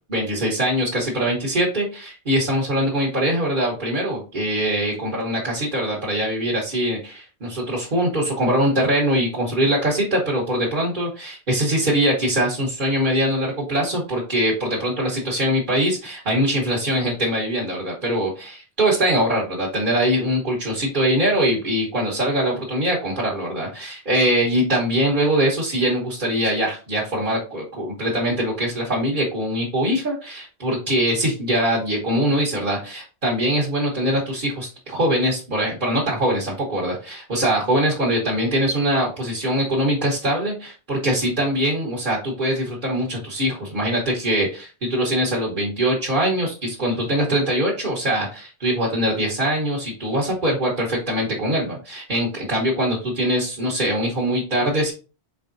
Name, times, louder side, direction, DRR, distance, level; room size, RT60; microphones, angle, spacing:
voice 1, 0.1-54.9, equal, 50° right, -4 dB, 1.4 m, -22 dB
4.7 x 3.6 x 2.6 m, 0.33 s
omnidirectional pair, 1.1 m